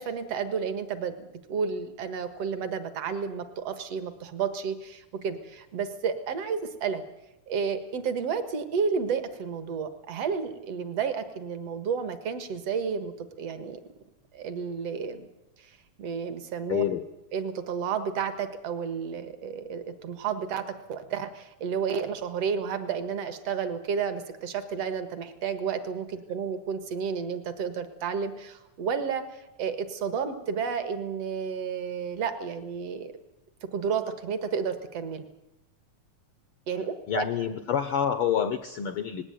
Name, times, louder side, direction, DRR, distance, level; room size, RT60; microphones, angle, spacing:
voice 1, 0.0-7.0 7.5-13.8 14.3-15.3 15.6-16.8 17.3-33.1 33.6-35.3 36.7-37.3, right 6 dB, 60° right, 10 dB, 2.4 m, -31 dB
voice 2, 16.7-17.1 37.1-39.2, left 8 dB, 70° left, 10 dB, 1.4 m, -27 dB
19.5 x 17.5 x 9.2 m, 0.91 s
omnidirectional pair, 3.5 m